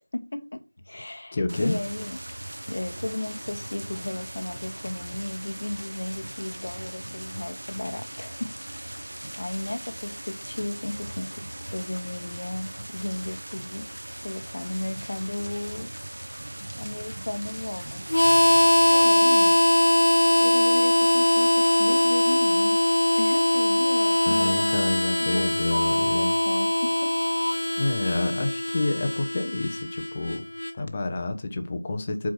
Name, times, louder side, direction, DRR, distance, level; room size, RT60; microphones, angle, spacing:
voice 1, 0.1-2.2 2.7-8.5 9.4-13.9 14.2-15.9 16.8-18.0 18.9-19.6 20.4-24.9 25.2-27.2, left 1 dB, 30° left, 0.9 m, -34 dB
voice 2, 1.3-1.8 24.3-26.3 27.8-30.4 30.8-32.3, left 2 dB, 15° left, 0.6 m, -28 dB
sound 1, 1.5-19.0, right 1 dB, 50° right, 1.0 m, -39 dB
Harmonica, 18.1-30.7, left 1 dB, 75° left, 0.4 m, -21 dB
6.4 x 4.6 x 5.9 m
figure-of-eight pair, 175°, 0 cm